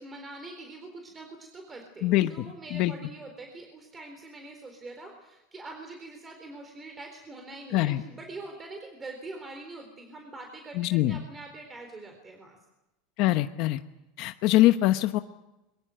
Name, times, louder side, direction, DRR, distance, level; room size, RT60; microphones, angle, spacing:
voice 1, 0.0-12.6, right 2 dB, 15° right, 4 dB, 3.9 m, -44 dB
voice 2, 2.0-2.9 7.7-8.0 10.7-11.2 13.2-13.8 14.2-15.2, left 16 dB, 55° left, 9 dB, 1.0 m, -24 dB
23.0 x 22.5 x 7.9 m, 0.97 s
supercardioid pair, 145°, 0 cm